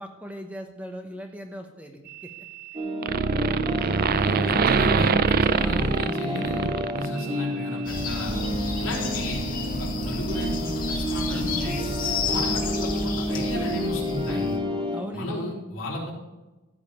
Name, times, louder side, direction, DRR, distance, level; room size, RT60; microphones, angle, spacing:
voice 1, 0.0-2.0 14.9-15.5, equal, 5° right, 3 dB, 0.9 m, -38 dB
sound 1, 2.1-2.8 3.0-7.5, right 5 dB, 45° right, 0.4 m, -24 dB
sound 2, 2.7-15.0, equal, 25° right, 2.4 m, -30 dB
voice 2, 4.0-8.3 8.8-9.4 9.8-11.9 12.3-14.5 15.1-16.1, left 1 dB, 60° left, -3 dB, 4.2 m, -34 dB
sound 3, 7.8-14.6, left 3 dB, 40° left, 2.0 m, -31 dB
15.0 x 5.1 x 9.6 m, 1.1 s
head